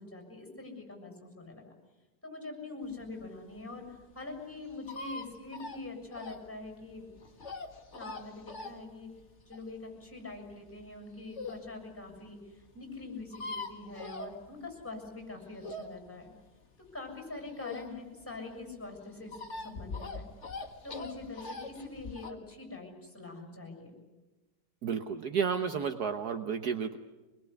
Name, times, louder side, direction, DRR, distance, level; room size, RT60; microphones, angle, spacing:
voice 1, 0.0-1.7 2.2-7.1 7.9-9.1 9.5-16.3 16.9-20.3 20.8-23.9, left 3 dB, 5° left, 3 dB, 6.9 m, -44 dB
sound 1, 3.1-11.7 12.1-12.2 12.4-12.5 12.7-12.8 13.0-14.9 15.2-18.2 18.5-22.3, left 3 dB, 40° left, 2.0 m, -43 dB
voice 2, 24.8-27.0, right 6 dB, 65° right, 7 dB, 1.5 m, -32 dB
25.0 x 21.5 x 9.7 m, 1.1 s
omnidirectional pair, 1.9 m